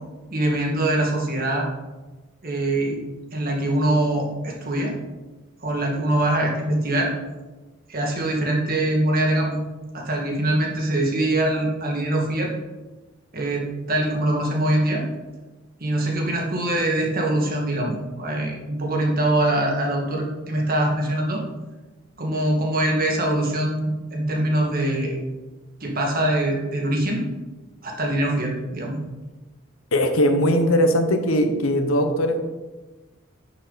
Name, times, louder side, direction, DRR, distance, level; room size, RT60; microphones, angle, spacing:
voice 1, 0.3-1.7 2.4-3.0 3.3-5.0 5.6-7.1 7.9-9.6 9.9-12.5 13.3-15.0 15.8-21.4 22.2-25.2 25.8-27.2 27.8-29.0, right 1 dB, 45° right, -1 dB, 2.1 m, -23 dB
voice 2, 29.9-32.5, equal, 85° left, 6 dB, 1.1 m, -20 dB
10.0 x 7.1 x 4.1 m, 1.2 s
head